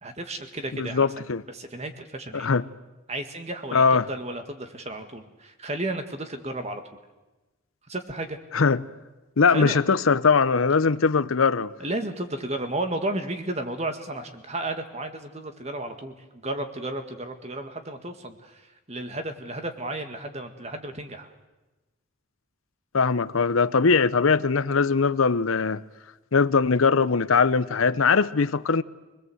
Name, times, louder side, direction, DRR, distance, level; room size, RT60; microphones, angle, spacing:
voice 1, 0.0-1.1 1.5-2.5 3.1-6.8 7.9-8.4 9.5-9.8 11.8-21.3, right 1 dB, 30° right, 1.9 m, -33 dB
voice 2, 0.7-1.4 2.3-2.6 3.7-4.1 8.5-8.8 9.4-11.7 22.9-25.8 26.3-28.8, left 5 dB, 85° left, 0.7 m, -21 dB
25.0 x 20.5 x 7.9 m
head